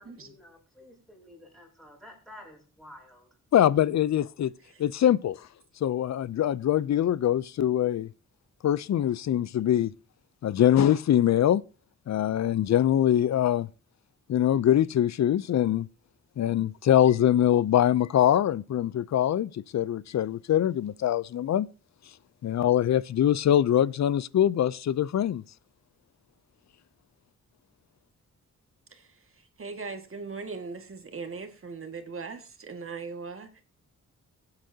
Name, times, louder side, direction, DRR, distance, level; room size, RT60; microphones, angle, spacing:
voice 1, 0.0-3.3, left 1 dB, ahead, 6.4 m, -51 dB
voice 2, 3.5-4.5 4.8-5.5 5.8-8.1 8.6-9.9 10.4-11.6 12.1-13.7 14.3-15.9 16.4-21.7 22.4-25.4, left 11 dB, 60° left, 0.5 m, -23 dB
voice 3, 29.6-33.6, right 4 dB, 45° right, 1.9 m, -39 dB
21.5 x 8.0 x 2.8 m
cardioid pair, 80°, 30 cm